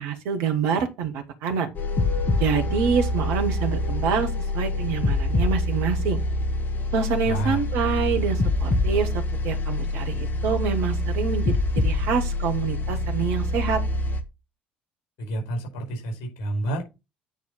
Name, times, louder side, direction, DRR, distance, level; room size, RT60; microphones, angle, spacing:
voice 1, 0.0-1.7 2.4-6.2 6.9-13.8, right 6 dB, 60° right, 1.7 m, -26 dB
sound 1, 1.7-14.2, left 1 dB, 35° left, 1.5 m, -25 dB
voice 2, 7.2-7.6 15.2-16.8, right 1 dB, 50° left, 4.8 m, -29 dB
9.4 x 4.6 x 4.0 m
figure-of-eight pair, 55°, 5 cm